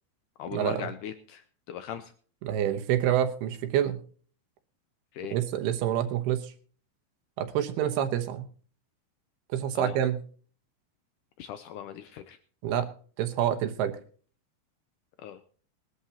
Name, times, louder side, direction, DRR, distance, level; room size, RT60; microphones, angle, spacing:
voice 1, 0.4-2.1 5.1-5.4 9.7-10.0 11.4-12.4 15.2-15.4, left 10 dB, 90° left, 10 dB, 1.8 m, -39 dB
voice 2, 2.4-4.0 5.3-6.5 7.4-8.4 9.5-10.2 12.6-12.9 13.2-13.9, right 10 dB, 80° right, 8 dB, 3.1 m, -27 dB
21.0 x 11.5 x 2.9 m, 0.43 s
omnidirectional pair, 4.5 m